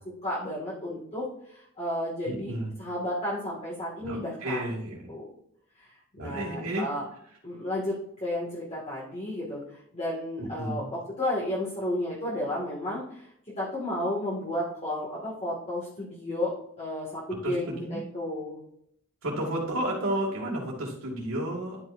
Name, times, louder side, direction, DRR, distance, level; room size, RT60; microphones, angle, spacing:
voice 1, 0.2-2.5 2.8-4.6 5.1-5.3 5.8-5.9 6.2-7.1 7.4-18.6, left 1 dB, 30° left, -6 dB, 2.1 m, -32 dB
voice 2, 2.2-2.7 4.0-5.1 6.2-6.8 10.4-10.9 17.4-18.0 19.2-21.8, right 1 dB, 75° right, -7 dB, 2.4 m, -32 dB
11.5 x 6.0 x 2.7 m, 0.73 s
head